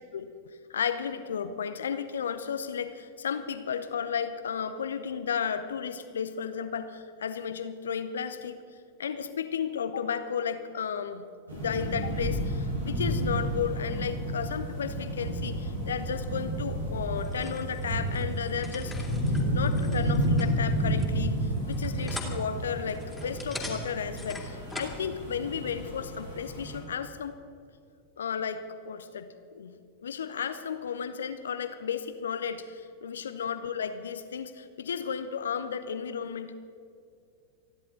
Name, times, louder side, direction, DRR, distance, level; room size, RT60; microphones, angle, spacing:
voice 1, 0.1-8.6 9.0-11.3 11.5-18.9 19.3-27.4 28.2-36.5, left 7 dB, 65° left, 10 dB, 0.7 m, -33 dB
sound 1, 11.5-26.8, right 1 dB, 75° right, 4.3 m, -31 dB
sound 2, 17.1-25.0, left 2 dB, 5° left, 2.8 m, -43 dB
29.0 x 11.0 x 3.8 m, 2.4 s
figure-of-eight pair, 90°, 0 cm